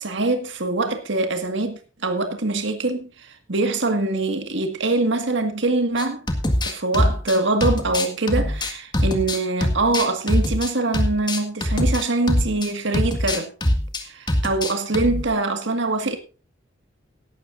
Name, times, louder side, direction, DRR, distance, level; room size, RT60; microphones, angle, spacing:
voice 1, 0.0-6.2 6.7-13.5 14.0-16.2, right 2 dB, 65° right, 1.9 m, -23 dB
sound 1, 6.0-12.7 12.9-14.0 14.3-15.2, left 1 dB, 25° left, 1.8 m, -23 dB
17.0 x 12.0 x 2.6 m
head